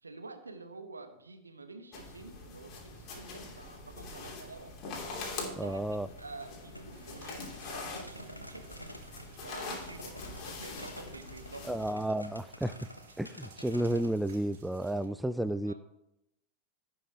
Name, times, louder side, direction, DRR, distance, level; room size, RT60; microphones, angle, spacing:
voice 1, 0.0-4.7 5.4-8.8 9.4-12.1 15.5-15.7, right 3 dB, 80° right, 7 dB, 1.2 m, -49 dB
sound 1, 1.9-11.9, left 3 dB, 35° left, 2.9 m, -43 dB
voice 2, 5.6-6.1 11.7-12.9 13.2-15.7, right 1 dB, 5° right, 14 dB, 0.3 m, -32 dB
sound 2, 6.0-14.2, equal, 90° left, 1.2 m, -50 dB
sound 3, 6.9-15.1, right 5 dB, 65° right, 1.7 m, -60 dB
17.0 x 6.2 x 3.5 m, 0.83 s
figure-of-eight pair, 90°, 0 cm